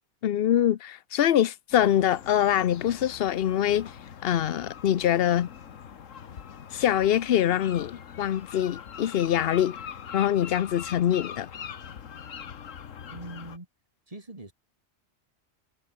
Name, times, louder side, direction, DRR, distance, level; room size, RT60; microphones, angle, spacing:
voice 1, 0.2-3.9 4.2-5.5 6.7-9.8 10.1-11.5, left 10 dB, 55° left, 0.8 m, -24 dB
sound 1, 1.7-13.6, left 7 dB, 75° left, 1.6 m, -42 dB
voice 2, 13.1-13.7 14.1-14.5, right 2 dB, 25° right, 3.1 m, -42 dB
omnidirectional pair, 1.3 m